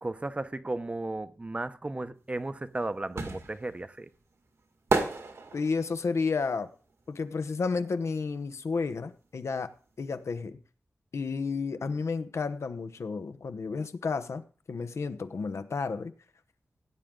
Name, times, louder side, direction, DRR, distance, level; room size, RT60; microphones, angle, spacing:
voice 1, 0.0-4.1, right 2 dB, 25° right, 0.7 m, -35 dB
sound 1, 2.3-8.1 8.4-10.0 10.3-10.4, right 3 dB, 80° right, 1.9 m, -33 dB
voice 2, 5.5-6.7 7.1-9.7 10.0-10.6 11.1-14.4 14.7-16.1, left 4 dB, 80° left, 0.9 m, -31 dB
17.0 x 9.0 x 3.8 m
wide cardioid pair, 95°, 5 cm